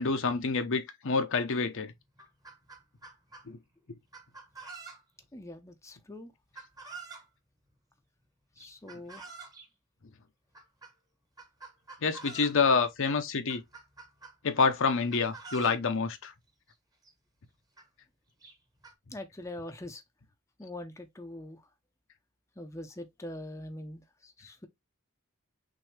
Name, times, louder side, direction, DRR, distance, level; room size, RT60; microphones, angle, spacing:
voice 1, 0.0-1.9 3.5-3.6 12.0-13.6 14.4-16.3, left 4 dB, 65° left, 0.7 m, -27 dB
Chicken rooster, 2.0-3.5 4.1-5.3 6.6-7.3 8.6-9.7 10.5-10.9 11.4-12.6 13.0-13.1 13.5-14.7 15.1-15.8 16.7-16.8 17.0-17.1 17.8-17.9 18.4-18.9, right 4 dB, 15° right, 1.1 m, -47 dB
voice 2, 5.3-6.3 8.6-9.2 19.1-20.0 20.6-21.6 22.6-24.7, left 1 dB, 15° left, 0.6 m, -43 dB
6.0 x 2.7 x 3.2 m
head